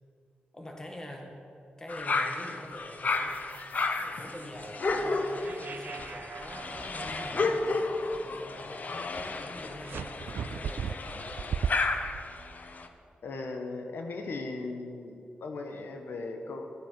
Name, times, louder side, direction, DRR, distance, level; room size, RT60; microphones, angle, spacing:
voice 1, 0.5-1.3 1.8-3.4 4.0-9.0 9.4-11.4, left 1 dB, 20° left, 2 dB, 1.8 m, -45 dB
sound 1, 1.9-12.9, left 3 dB, 50° left, 0.9 m, -33 dB
sound 2, 3.1-9.4, right 4 dB, 55° right, 1.2 m, -47 dB
sound 3, 9.9-12.2, right 7 dB, 80° right, 0.4 m, -34 dB
voice 2, 13.2-16.7, left 3 dB, 80° left, 4 dB, 1.3 m, -38 dB
12.5 x 9.4 x 7.5 m, 2.6 s
wide cardioid pair, 115°, 4 cm